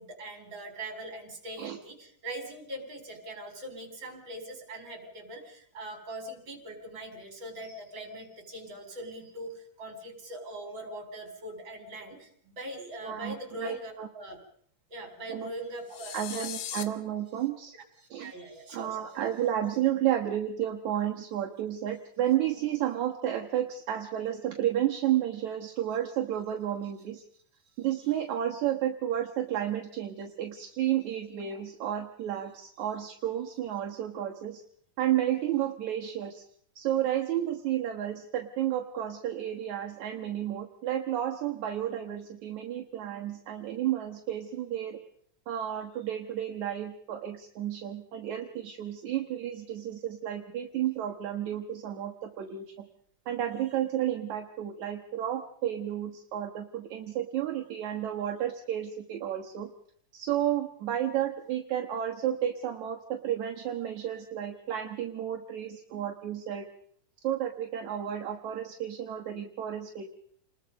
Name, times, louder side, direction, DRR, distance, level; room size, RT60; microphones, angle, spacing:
voice 1, 0.0-14.4 14.9-16.5 18.0-19.1, right 1 dB, 35° right, 5 dB, 4.7 m, -42 dB
voice 2, 13.0-14.1 15.3-15.5 16.1-17.7 18.1-18.3 18.7-27.2 27.8-34.6 35.0-36.4 36.8-45.0 45.5-52.9 53.3-59.7 60.1-66.7 67.2-70.1, right 11 dB, 70° right, 3 dB, 2.6 m, -32 dB
sound 1, 15.9-16.8, left 10 dB, 75° left, 2.9 m, -38 dB
28.5 x 20.5 x 5.2 m, 0.63 s
omnidirectional pair, 3.6 m